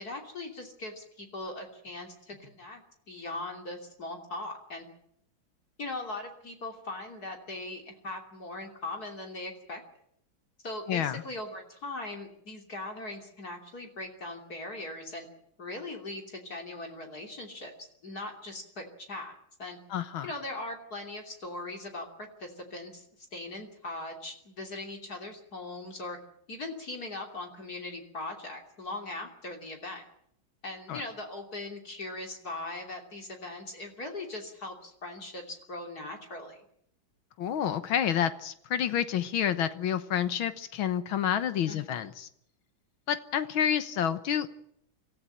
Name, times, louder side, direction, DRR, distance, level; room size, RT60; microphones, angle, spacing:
voice 1, 0.0-2.8 3.1-4.8 5.8-9.8 10.6-15.3 15.6-17.7 18.0-19.8 20.2-23.1 23.3-26.2 26.5-30.1 30.6-36.6 41.7-41.8, left 2 dB, 50° left, 2 dB, 3.5 m, -40 dB
voice 2, 10.9-11.2 19.9-20.3 30.9-31.0 37.4-42.3 43.1-44.5, left 9 dB, 85° left, 11 dB, 1.9 m, -29 dB
26.0 x 14.5 x 9.0 m, 0.70 s
omnidirectional pair, 2.2 m